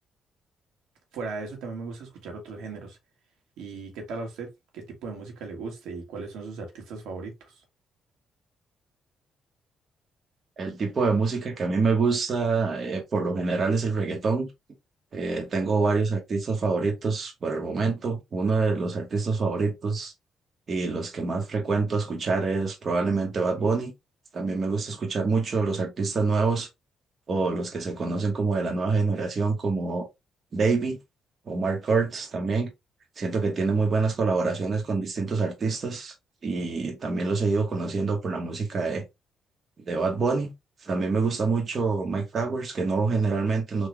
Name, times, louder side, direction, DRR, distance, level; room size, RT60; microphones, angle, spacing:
voice 1, 1.1-3.0 3.6-7.6, right 4 dB, 85° right, 1.5 m, -37 dB
voice 2, 10.6-14.5 15.1-20.1 20.7-23.9 24.3-26.7 27.3-30.1 30.5-31.0 31.5-32.7 33.2-36.1 36.4-39.0 39.8-40.5 40.8-43.9, right 4 dB, 45° right, 1.1 m, -26 dB
3.8 x 2.4 x 3.1 m
cardioid pair, 90°, 0 cm